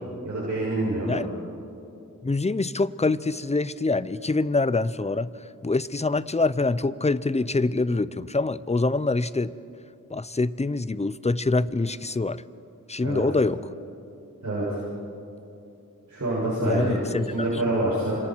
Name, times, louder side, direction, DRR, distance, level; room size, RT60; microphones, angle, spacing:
voice 1, 0.2-1.2 13.0-13.2 14.4-14.8 16.1-18.2, right 1 dB, 60° right, -8 dB, 7.1 m, -26 dB
voice 2, 2.2-5.3 5.6-9.5 10.1-12.4 12.9-13.6 16.7-17.3, left 3 dB, 20° left, 16 dB, 0.6 m, -25 dB
29.5 x 26.0 x 4.7 m, 2.7 s
wide cardioid pair, 80°, 33 cm